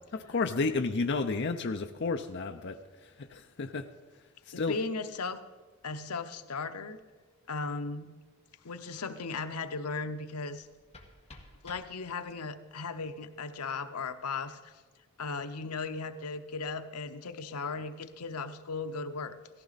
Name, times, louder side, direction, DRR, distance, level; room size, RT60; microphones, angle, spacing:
voice 1, 0.1-3.9 4.4-4.8, left 3 dB, 50° left, 6 dB, 0.5 m, -32 dB
voice 2, 4.5-5.4 5.8-7.0 7.5-8.1 8.6-10.7 11.6-14.7 15.2-19.4, left 4 dB, 85° left, 10 dB, 0.8 m, -37 dB
sound 1, 10.5-12.5, left 2 dB, 25° left, 1.6 m, -54 dB
17.5 x 15.0 x 4.0 m, 1.4 s
head